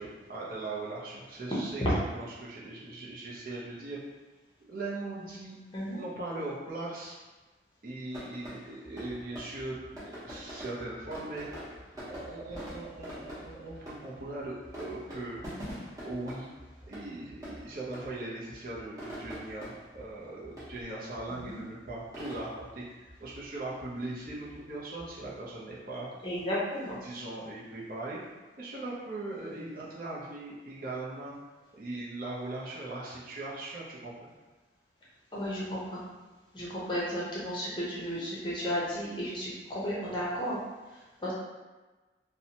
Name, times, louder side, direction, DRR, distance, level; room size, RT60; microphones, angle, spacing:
voice 1, 0.0-4.0 4.7-5.6 5.9-7.2 7.8-11.5 12.1-15.4 16.0-16.5 16.9-26.1 26.7-28.2 28.6-31.4 31.7-34.3, right 2 dB, 50° right, -6 dB, 0.6 m, -39 dB
sound 1, 8.1-25.7, equal, 20° right, 0.8 m, -46 dB
voice 2, 26.2-27.0 35.3-36.0 36.5-40.6 41.2-41.3, equal, 25° left, -7 dB, 0.6 m, -33 dB
2.7 x 2.1 x 2.8 m, 1.2 s
head